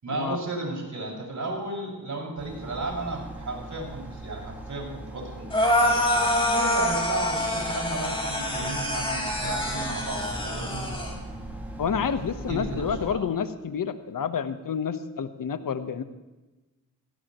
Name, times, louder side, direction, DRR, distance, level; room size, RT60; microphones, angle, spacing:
voice 1, 0.0-10.9 12.4-13.2, right 2 dB, 50° right, -1 dB, 6.2 m, -34 dB
sound 1, 2.4-13.1, right 1 dB, 5° right, 5.4 m, -39 dB
sound 2, 5.5-11.1, left 1 dB, 15° left, 4.8 m, -26 dB
voice 2, 11.8-16.0, left 7 dB, 60° left, 11 dB, 1.2 m, -29 dB
17.5 x 17.5 x 3.1 m, 1.1 s
cardioid pair, 60°, 38 cm